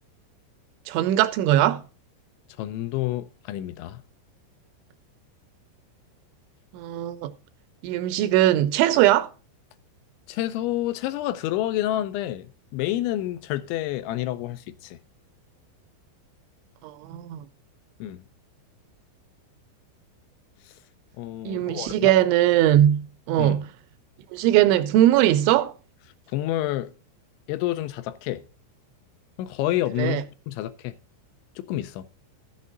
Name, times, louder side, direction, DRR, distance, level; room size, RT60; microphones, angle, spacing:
voice 1, 0.9-1.8 6.7-7.3 7.8-9.3 16.8-17.5 21.5-23.7 24.3-25.7 30.0-30.2, right 13 dB, 85° right, 2.8 m, -20 dB
voice 2, 2.6-4.0 10.3-15.0 18.0-18.2 20.7-20.8 21.2-22.1 23.4-23.5 26.3-26.9 27.5-28.4 29.4-30.9 31.6-32.0, left 14 dB, 80° left, 2.7 m, -29 dB
13.5 x 7.3 x 3.8 m
omnidirectional pair, 5.8 m